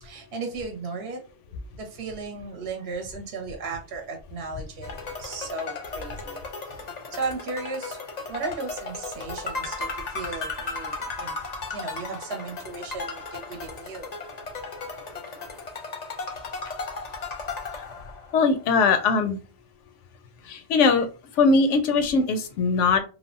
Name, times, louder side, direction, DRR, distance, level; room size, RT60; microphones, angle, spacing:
voice 1, 0.0-1.2 1.8-4.9 5.2-6.8 7.1-8.0 8.3-11.3 11.7-14.2, right 3 dB, 65° right, 2 dB, 0.8 m, -35 dB
sound 1, 4.8-18.5, left 3 dB, 50° left, 0.5 m, -35 dB
voice 2, 18.3-19.4 20.5-21.1 21.3-23.0, left 4 dB, 90° left, 8 dB, 0.9 m, -20 dB
3.3 x 2.0 x 2.5 m, 0.33 s
omnidirectional pair, 1.2 m